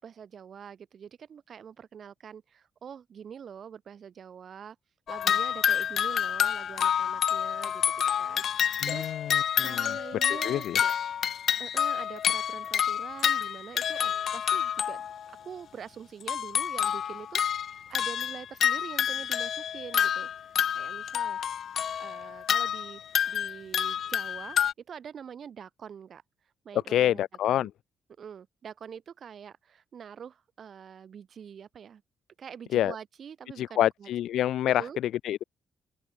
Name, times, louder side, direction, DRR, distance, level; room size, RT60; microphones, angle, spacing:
voice 1, 0.0-4.8 5.1-7.8 8.2-9.3 9.6-11.0 11.6-15.0 15.4-17.4 17.7-20.3 20.7-21.4 22.0-23.0 23.3-24.6 24.9-26.2 26.6-27.7 28.2-32.0 32.4-34.1 34.6-35.0, right 7 dB, 55° right, 7.6 m, -44 dB
sound 1, 5.1-15.3 16.2-24.7, left 8 dB, 60° left, 2.8 m, -28 dB
voice 2, 8.8-10.0 10.3-10.8 26.9-27.7 32.7-32.9 33.6-35.4, left 12 dB, 75° left, 1.9 m, -27 dB
cardioid pair, 90°, 0 cm